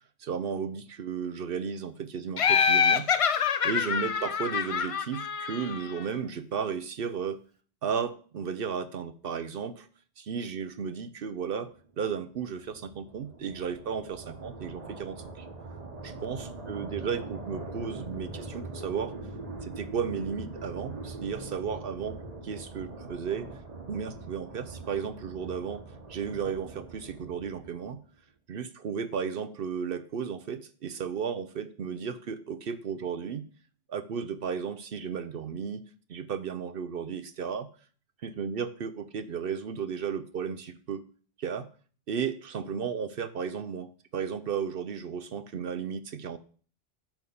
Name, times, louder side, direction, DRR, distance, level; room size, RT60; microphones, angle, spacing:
voice 1, 0.2-3.1 3.4-7.4 7.8-9.9 10.2-11.7 12.0-15.5 16.0-19.1 19.6-22.2 22.4-23.5 23.9-28.0 28.5-33.4 33.9-35.8 36.1-37.7 38.2-41.0 41.4-41.7 42.1-46.4, right 6 dB, 60° right, 11 dB, 0.8 m, -34 dB
Laughter, 2.4-6.0, left 7 dB, 65° left, 0.3 m, -26 dB
sound 1, 11.8-28.1, right 3 dB, 35° right, 1.2 m, -42 dB
10.5 x 3.6 x 6.9 m, 0.42 s
omnidirectional pair, 1.2 m